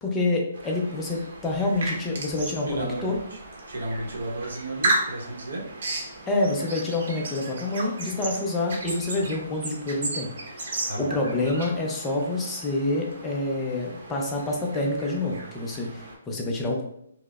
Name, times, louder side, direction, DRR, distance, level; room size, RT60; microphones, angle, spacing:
voice 1, 0.0-3.2 6.3-10.3 10.6-16.8, left 2 dB, 10° left, 0 dB, 0.4 m, -27 dB
sound 1, 0.5-16.1, right 2 dB, 55° right, 0.8 m, -35 dB
voice 2, 2.7-3.4 3.7-5.7 10.9-11.2, right 1 dB, 90° right, 0 dB, 0.9 m, -33 dB
4.6 x 2.0 x 2.3 m, 0.73 s
hypercardioid pair, 170°, 0 cm